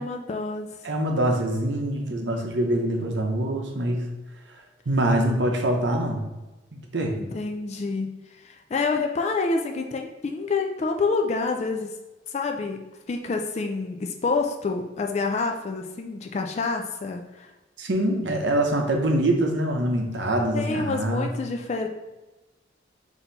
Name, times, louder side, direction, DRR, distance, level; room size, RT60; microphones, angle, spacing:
voice 1, 0.0-0.7 7.2-11.9 12.3-17.5 20.5-21.9, left 4 dB, 35° left, 3 dB, 0.3 m, -28 dB
voice 2, 0.8-4.1 4.9-6.2 6.7-7.1 17.8-21.3, right 1 dB, 65° right, 2 dB, 0.8 m, -24 dB
4.3 x 2.8 x 3.9 m, 1.1 s
head